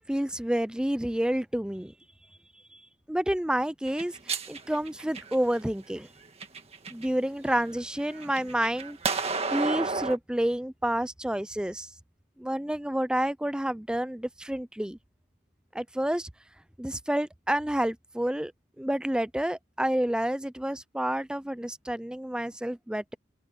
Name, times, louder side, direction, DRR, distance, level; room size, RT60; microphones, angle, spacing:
voice 1, 0.1-1.9 2.7-2.8 3.1-6.1 6.9-11.9 12.4-15.0 15.7-16.3 16.8-18.5 18.8-23.1, right 1 dB, 5° right, 0.4 m, -29 dB
sound 1, 3.9-5.6 6.2-7.1 7.5-10.2, right 4 dB, 30° right, 1.8 m, -32 dB
head